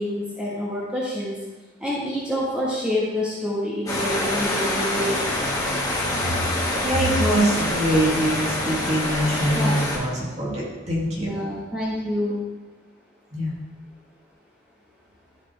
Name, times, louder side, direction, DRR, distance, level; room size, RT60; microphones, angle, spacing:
voice 1, 0.0-1.4 1.8-5.2 9.5-9.8 11.2-12.4, equal, 5° right, -9 dB, 1.7 m, -27 dB
sound 1, 3.9-10.0, left 1 dB, 20° left, 2.3 m, -26 dB
voice 2, 6.6-11.3 13.3-13.5, right 1 dB, 35° right, -5 dB, 2.7 m, -23 dB
13.0 x 5.8 x 3.5 m, 1.2 s
head